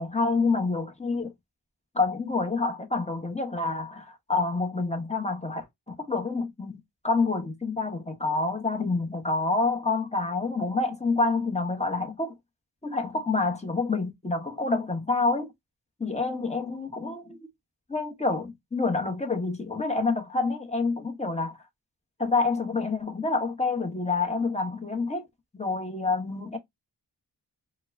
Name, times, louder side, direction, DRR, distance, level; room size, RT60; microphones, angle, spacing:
voice 1, 0.0-1.3 1.9-6.8 7.0-12.3 12.8-15.5 16.0-17.5 17.9-21.6 22.2-25.3 25.5-26.6, left 3 dB, 15° left, 0.9 m, -27 dB
4.4 x 2.2 x 2.6 m
wide cardioid pair, 45°, 44 cm